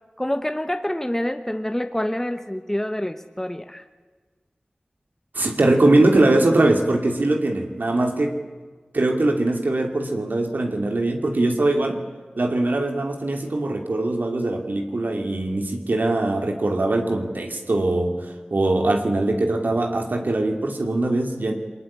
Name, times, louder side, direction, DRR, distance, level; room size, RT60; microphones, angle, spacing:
voice 1, 0.2-3.8, left 1 dB, 15° left, 7 dB, 1.1 m, -27 dB
voice 2, 5.3-8.3 8.9-12.0 12.4-21.5, right 2 dB, 80° right, 3 dB, 2.6 m, -21 dB
23.0 x 20.0 x 9.8 m, 1.4 s
wide cardioid pair, 50°, 3 cm